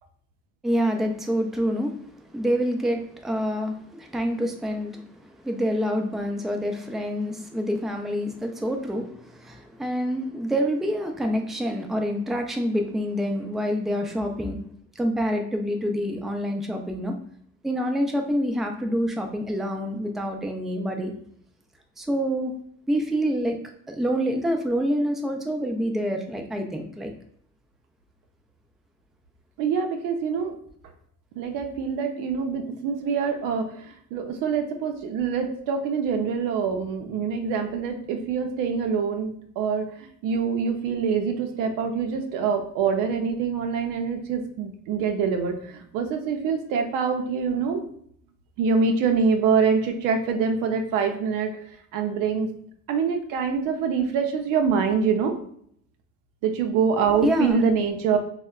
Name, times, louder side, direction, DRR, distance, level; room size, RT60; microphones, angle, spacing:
voice 1, 0.6-14.6 15.0-17.1 17.6-21.1 22.0-22.5 22.9-23.6 23.9-27.1 57.2-57.6, equal, ahead, 4 dB, 0.3 m, -27 dB
voice 2, 29.6-30.6 31.4-47.9 48.6-51.5 51.9-52.5 52.9-55.4 56.4-58.2, right 6 dB, 85° right, 5 dB, 0.5 m, -25 dB
3.3 x 2.1 x 2.3 m, 0.66 s
supercardioid pair, 75°, 32 cm